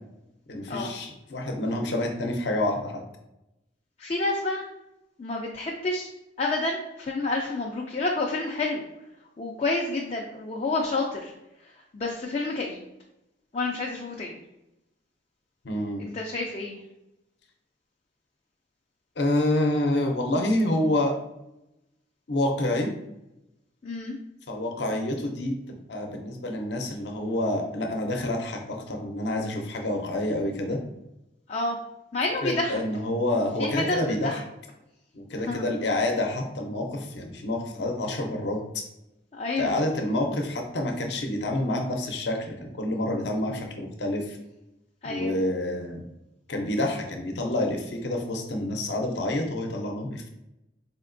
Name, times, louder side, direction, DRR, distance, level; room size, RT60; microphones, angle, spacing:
voice 1, 0.5-3.0 15.6-16.0 19.2-21.2 22.3-22.9 24.5-25.6 25.9-30.8 32.4-34.4 35.1-38.6 39.6-44.4 45.0-46.0 46.5-50.3, left 1 dB, 70° left, 3 dB, 0.6 m, -28 dB
voice 2, 4.0-4.6 5.2-6.1 6.4-8.8 9.4-11.3 11.6-12.8 13.5-14.4 16.0-16.8 23.8-24.2 31.5-31.8 32.1-32.8 33.6-34.4 35.4-35.7 39.3-39.7 45.0-45.3, left 2 dB, 35° left, -1 dB, 0.4 m, -29 dB
4.2 x 2.8 x 2.6 m, 0.89 s
head